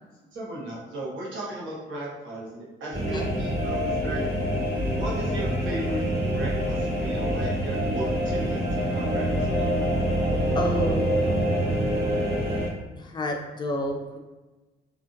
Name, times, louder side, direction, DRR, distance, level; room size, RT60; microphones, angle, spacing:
voice 1, 0.3-4.2 4.9-6.0 6.3-8.6 8.9-9.8, right 1 dB, 75° right, -4 dB, 1.0 m, -36 dB
sound 1, 2.9-12.7, equal, 55° right, 1.2 m, -26 dB
voice 2, 10.5-11.5 13.0-14.2, left 1 dB, 20° left, 1 dB, 0.5 m, -30 dB
2.5 x 2.4 x 2.6 m, 1.2 s
cardioid pair, 90°, 20 cm